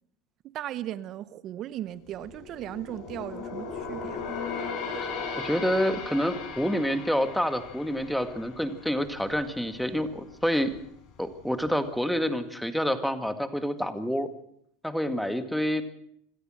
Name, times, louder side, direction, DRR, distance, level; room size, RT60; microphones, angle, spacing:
voice 1, 0.5-4.4, right 12 dB, 45° right, 0.8 m, -37 dB
sound 1, 1.9-9.5 9.8-10.1 10.6-11.3 11.7-11.8, left 5 dB, 50° left, 5.4 m, -37 dB
voice 2, 5.4-10.7 11.2-14.3 14.8-15.8, equal, ahead, 1.9 m, -28 dB
26.5 x 13.0 x 7.7 m
supercardioid pair, 120°, 0 cm